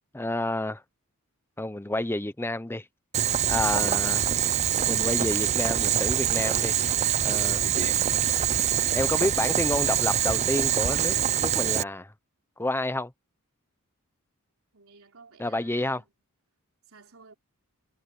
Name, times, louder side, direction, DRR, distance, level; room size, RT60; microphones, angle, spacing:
voice 1, 0.1-0.8 1.6-2.8 3.5-4.3 4.8-6.7 7.2-7.6 8.9-11.1 11.4-12.1 12.6-13.1 15.4-16.0, left 1 dB, 10° left, 0.9 m, -29 dB
Boiling, 3.1-11.8, right 10 dB, 30° right, 0.4 m, -24 dB
voice 2, 14.7-16.0 16.9-17.3, right 4 dB, 65° right, 4.1 m, -54 dB
head